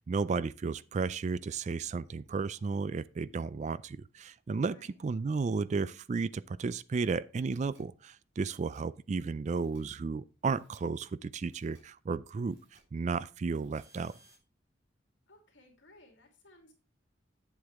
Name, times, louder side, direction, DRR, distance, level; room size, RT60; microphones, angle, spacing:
voice 1, 0.1-12.6 12.9-14.1, right 4 dB, 35° right, 0.3 m, -33 dB
voice 2, 4.6-4.9 15.3-16.7, left 2 dB, 75° left, 2.7 m, -60 dB
sound 1, 7.5-7.8 8.5-8.8 9.5-9.8 10.5-10.8 11.5-11.8 12.5-12.8 13.5-14.4, right 2 dB, 80° right, 4.2 m, -64 dB
8.5 x 7.8 x 3.5 m
head